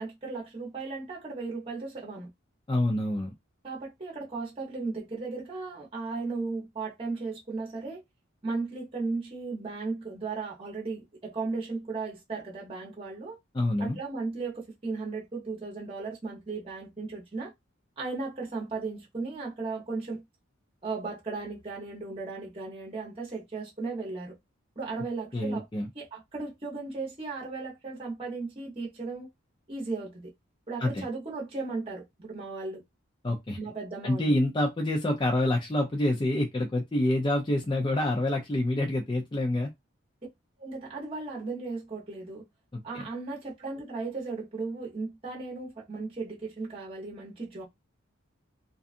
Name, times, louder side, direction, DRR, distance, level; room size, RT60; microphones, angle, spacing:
voice 1, 0.0-2.3 3.6-8.0 8.4-13.4 13.8-17.5 18.0-20.2 20.8-24.3 24.8-25.6 25.9-29.3 29.7-30.2 30.7-32.8 33.6-34.3 40.6-42.4 42.8-47.6, right 3 dB, 25° right, 0.8 m, -36 dB
voice 2, 2.7-3.3 13.5-14.0 25.3-25.9 30.8-31.0 33.2-33.6 34.0-39.7 42.7-43.1, left 1 dB, 20° left, 0.4 m, -27 dB
2.6 x 2.3 x 2.4 m
head